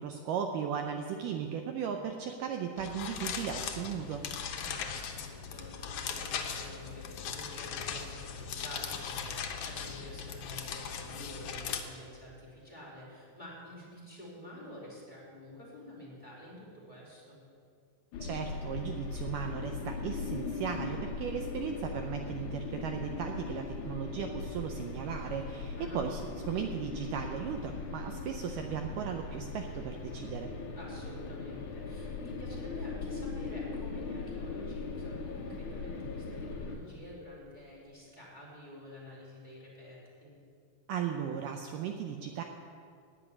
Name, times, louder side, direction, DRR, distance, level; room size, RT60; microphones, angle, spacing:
voice 1, 0.0-4.3 18.2-30.5 40.9-42.4, right 7 dB, 75° right, 4 dB, 2.1 m, -36 dB
sound 1, 2.8-11.8, left 7 dB, 90° left, 1.4 m, -39 dB
voice 2, 4.5-17.4 25.7-26.0 30.7-40.3, left 1 dB, 10° left, -6 dB, 3.8 m, -48 dB
sound 2, 18.1-36.8, left 4 dB, 65° left, 2.4 m, -39 dB
Hammer, 21.7-22.0 22.2-25.8 27.6-34.5 35.0-37.0, equal, 35° right, 2.0 m, -54 dB
16.0 x 5.6 x 9.7 m, 2.3 s
omnidirectional pair, 4.1 m